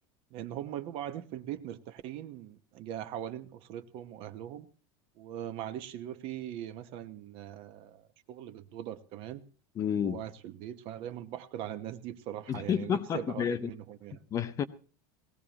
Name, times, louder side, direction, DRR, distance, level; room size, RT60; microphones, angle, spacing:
voice 1, 0.3-4.7 5.2-9.4 10.0-14.2, right 11 dB, 50° right, 1.0 m, -41 dB
voice 2, 9.8-10.2 12.5-13.7 14.3-14.6, left 8 dB, 25° left, 0.7 m, -30 dB
19.5 x 16.0 x 3.0 m
supercardioid pair, 150°, 12 cm